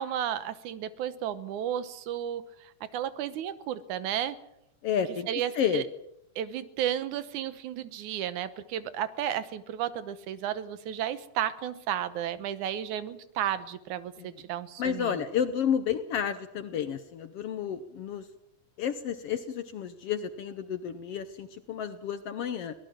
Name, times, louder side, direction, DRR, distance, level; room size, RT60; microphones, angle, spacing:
voice 1, 0.0-2.4 2.9-4.4 5.3-5.8 6.4-15.1, right 10 dB, 75° right, 14 dB, 2.4 m, -33 dB
voice 2, 4.8-5.3 5.5-5.9 14.2-14.3 14.8-18.3 18.8-22.7, left 8 dB, 65° left, 10 dB, 1.5 m, -31 dB
23.5 x 18.0 x 7.4 m, 0.83 s
omnidirectional pair, 3.6 m